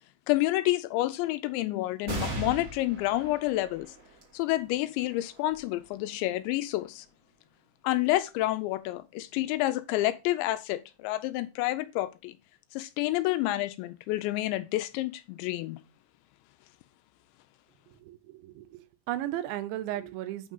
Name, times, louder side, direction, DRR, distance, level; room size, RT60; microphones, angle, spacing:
voice 1, 0.3-3.9 4.3-7.1 7.8-12.3 12.7-15.8, left 16 dB, 85° left, 2.8 m, -29 dB
sound 1, 2.1-9.0 9.6-9.7 10.8-11.3, right 2 dB, 45° right, 1.1 m, -42 dB
voice 2, 17.9-20.5, right 13 dB, 90° right, 3.2 m, -35 dB
8.9 x 3.8 x 5.5 m
omnidirectional pair, 5.3 m